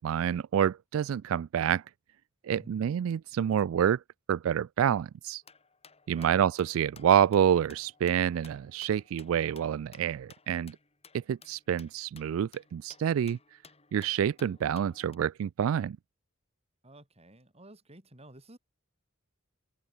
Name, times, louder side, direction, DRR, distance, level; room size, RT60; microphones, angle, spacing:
voice 1, 0.0-1.8 2.4-4.0 4.3-5.4 6.1-10.8 11.1-13.4 13.9-16.0, right 9 dB, 80° right, 0.3 m, -27 dB
voice 2, 2.5-2.9 6.1-6.4 16.8-18.6, right 1 dB, 30° right, 5.4 m, -52 dB
sound 1, 5.4-15.2, left 5 dB, 30° left, 6.0 m, -57 dB
head